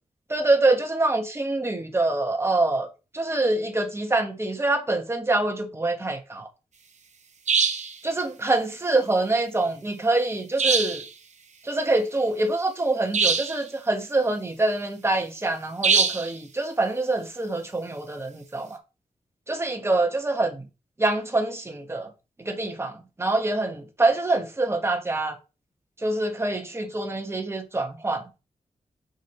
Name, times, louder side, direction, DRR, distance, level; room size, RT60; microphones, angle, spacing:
voice 1, 0.3-2.9 3.1-6.5 8.0-11.0 11.6-18.8 19.5-20.6 21.0-22.1 22.4-25.4 26.0-28.2, right 2 dB, 20° right, 1.1 m, -25 dB
sound 1, 7.5-8.0 10.6-11.1 13.1-13.6 15.8-16.3, right 5 dB, 60° right, 0.8 m, -22 dB
5.1 x 5.0 x 4.1 m
wide cardioid pair, 150°, 14 cm